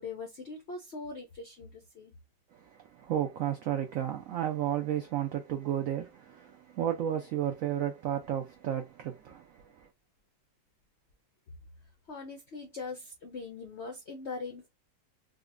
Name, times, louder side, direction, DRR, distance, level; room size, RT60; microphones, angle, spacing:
voice 1, 0.0-2.1 12.1-14.7, left 4 dB, 75° left, 0.6 m, -41 dB
voice 2, 2.5-9.9, right 10 dB, 85° right, 0.7 m, -33 dB
3.8 x 2.1 x 2.4 m
omnidirectional pair, 2.0 m